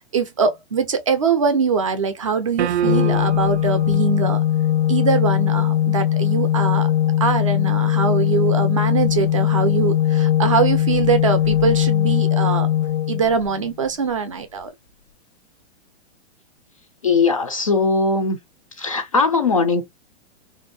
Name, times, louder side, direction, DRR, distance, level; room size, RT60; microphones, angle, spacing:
voice 1, 0.1-4.4 4.9-6.9 7.2-12.7 13.1-14.7, right 5 dB, 30° right, 0.4 m, -22 dB
sound 1, 2.6-3.6, right 9 dB, 90° right, 0.6 m, -24 dB
Organ, 2.8-13.7, left 11 dB, 80° left, 0.6 m, -20 dB
voice 2, 17.0-18.4 18.8-19.8, left 4 dB, 35° left, 0.4 m, -19 dB
3.4 x 2.6 x 2.6 m
hypercardioid pair, 175°, 33 cm